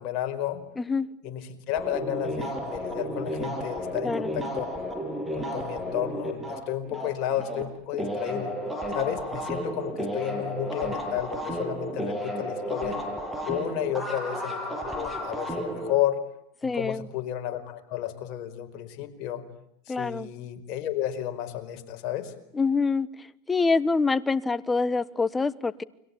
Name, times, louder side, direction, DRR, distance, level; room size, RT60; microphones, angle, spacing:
voice 1, 0.0-0.6 1.2-4.7 5.3-8.5 8.9-13.0 13.4-16.2 16.6-19.4 19.9-22.3, left 11 dB, 55° left, 5 dB, 4.9 m, -32 dB
voice 2, 0.8-1.1 4.0-4.3 16.6-17.1 19.9-20.3 22.5-23.1 23.5-25.8, left 4 dB, 15° left, 16 dB, 1.2 m, -25 dB
sound 1, 1.7-7.6 7.9-15.9, equal, 5° right, 7.6 m, -32 dB
30.0 x 23.0 x 8.7 m, 0.74 s
supercardioid pair, 115°, 0 cm